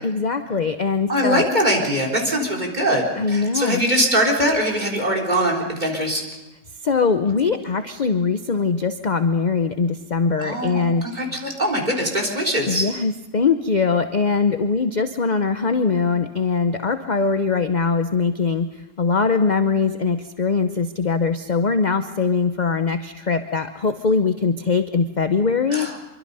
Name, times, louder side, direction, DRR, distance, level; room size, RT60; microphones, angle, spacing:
voice 1, 0.0-1.4 3.2-3.8 6.8-11.1 12.6-18.7 19.0-25.9, left 4 dB, 45° left, 8 dB, 0.6 m, -21 dB
voice 2, 1.1-6.2 10.4-12.9 25.7-26.0, equal, 25° right, 1 dB, 3.9 m, -22 dB
25.0 x 23.5 x 5.5 m, 1.0 s
omnidirectional pair, 1.7 m